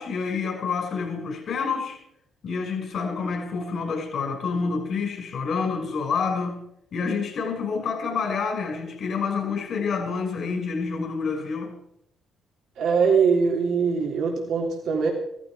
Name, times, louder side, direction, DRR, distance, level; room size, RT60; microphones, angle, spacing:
voice 1, 0.0-2.0 2.4-6.7 6.9-11.8, left 5 dB, 60° left, 5.6 m, -28 dB
voice 2, 12.8-15.1, right 5 dB, 75° right, 3.2 m, -22 dB
15.0 x 14.5 x 4.9 m
cardioid pair, 90°, 0 cm